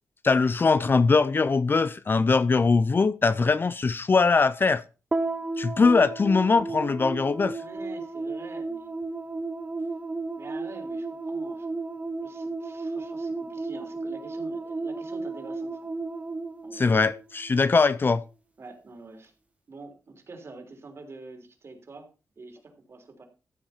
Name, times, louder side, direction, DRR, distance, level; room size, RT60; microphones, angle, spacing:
voice 1, 0.2-4.8 5.6-7.6 16.7-18.2, left 4 dB, 35° left, 0.5 m, -21 dB
sound 1, 5.1-17.6, right 3 dB, 20° right, 1.0 m, -33 dB
voice 2, 7.4-8.9 10.4-11.8 12.2-15.8 16.6-16.9 18.6-19.3 19.7-22.1 22.4-23.2, right 3 dB, 50° right, 3.6 m, -46 dB
14.5 x 7.6 x 4.5 m
wide cardioid pair, 115°, 6 cm